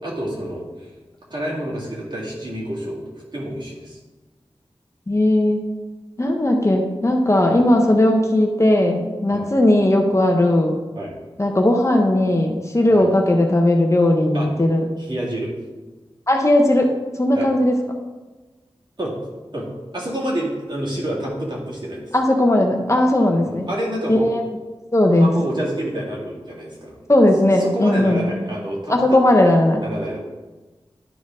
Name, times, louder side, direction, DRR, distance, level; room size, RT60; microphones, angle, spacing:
voice 1, 0.0-0.7 1.3-3.0 3.3-4.0 9.3-9.5 11.0-11.2 12.9-13.1 14.3-14.5 15.0-15.5 17.3-17.5 19.0-19.2 19.5-19.7 19.9-22.0 23.4-24.3 25.1-27.0 27.5-29.2 29.8-30.2, right 1 dB, 50° right, -5 dB, 2.3 m, -28 dB
voice 2, 5.1-5.7 6.2-10.8 11.4-14.9 16.3-16.9 17.2-17.8 22.1-23.7 24.1-24.4 24.9-25.3 27.1-28.2 28.9-29.8, left 1 dB, 30° left, 2 dB, 0.8 m, -17 dB
11.0 x 4.4 x 3.7 m, 1.2 s
wide cardioid pair, 70°, 10 cm